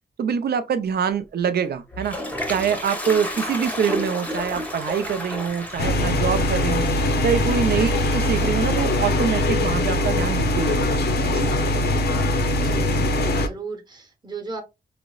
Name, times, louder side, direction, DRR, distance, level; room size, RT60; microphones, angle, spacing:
voice 1, 0.2-2.2 2.5-6.9 7.2-11.0 11.3-11.5, right 7 dB, 65° right, 0.5 m, -25 dB
Toilet flush, 1.7-10.5, left 1 dB, 10° left, 0.7 m, -33 dB
sound 1, 5.8-13.5, left 1 dB, 70° left, 0.6 m, -22 dB
voice 2, 12.5-14.6, right 3 dB, 25° right, 1.0 m, -36 dB
4.9 x 2.0 x 2.3 m
wide cardioid pair, 130°, 17 cm